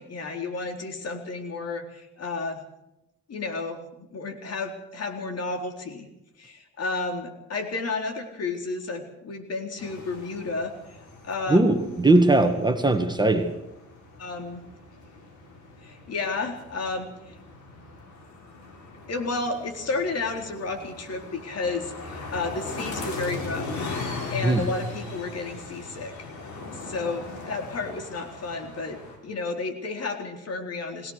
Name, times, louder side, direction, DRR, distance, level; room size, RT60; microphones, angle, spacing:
voice 1, 0.0-2.6 3.3-3.8 4.1-6.1 6.4-11.0 11.2-11.6 14.2-14.6 15.8-17.3 19.1-23.7 24.3-26.3 26.7-31.1, left 3 dB, 55° left, 4 dB, 4.1 m, -32 dB
sound 1, 9.8-29.2, left 3 dB, 70° left, 6.8 m, -39 dB
voice 2, 11.5-13.5 24.4-24.7, right 2 dB, 15° right, 6 dB, 2.0 m, -20 dB
21.5 x 18.5 x 6.6 m, 0.88 s
cardioid pair, 90°, 30 cm